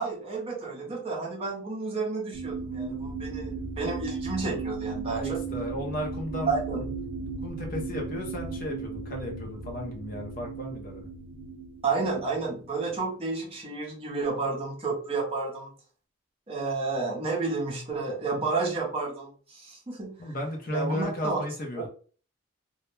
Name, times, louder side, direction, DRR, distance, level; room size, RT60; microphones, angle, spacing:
voice 1, 0.0-5.4 6.5-6.9 11.8-15.7 16.5-20.2 20.7-21.4, right 3 dB, 30° right, -2 dB, 0.6 m, -31 dB
sound 1, 2.3-12.4 13.0-13.1, right 4 dB, 85° right, 0.6 m, -36 dB
voice 2, 5.0-6.6 7.4-11.1 20.2-21.9, equal, 45° left, 2 dB, 0.6 m, -34 dB
2.2 x 2.0 x 3.0 m, 0.41 s
head